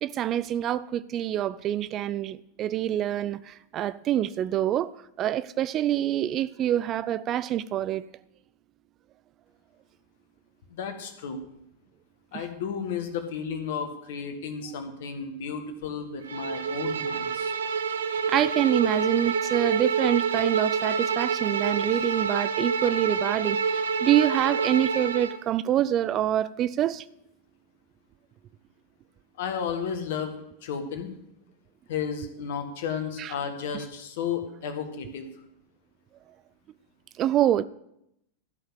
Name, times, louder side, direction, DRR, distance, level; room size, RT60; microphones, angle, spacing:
voice 1, 0.0-8.0 12.3-12.4 18.3-27.1 33.2-33.3 37.2-37.6, right 11 dB, 30° right, 0.4 m, -26 dB
voice 2, 10.7-11.4 12.3-17.5 29.4-31.1 31.9-35.3, left 6 dB, 55° left, 1.6 m, -33 dB
Bowed string instrument, 16.3-25.4, right 5 dB, 65° right, 0.7 m, -27 dB
13.0 x 5.7 x 7.4 m
figure-of-eight pair, 90°, 0 cm